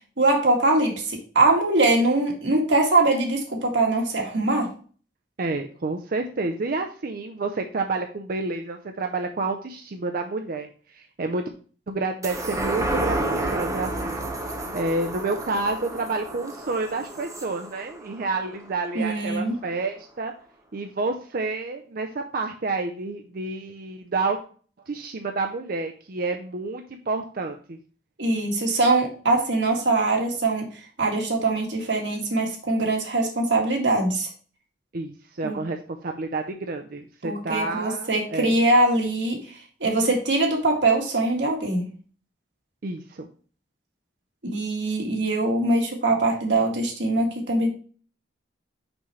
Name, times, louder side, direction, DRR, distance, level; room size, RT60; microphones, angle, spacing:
voice 1, 0.2-4.7 19.0-19.6 28.2-30.7 31.0-34.3 35.4-35.6 37.2-41.9 44.4-47.7, right 2 dB, 90° right, 0 dB, 1.8 m, -22 dB
voice 2, 5.4-11.5 11.9-14.2 14.7-20.3 20.7-24.4 24.9-27.8 34.9-38.6 42.8-43.3, right 3 dB, 55° right, 5 dB, 0.6 m, -29 dB
sound 1, 12.2-19.0 19.4-19.5, right 1 dB, 20° right, 1.0 m, -30 dB
6.0 x 5.5 x 3.2 m, 0.41 s
head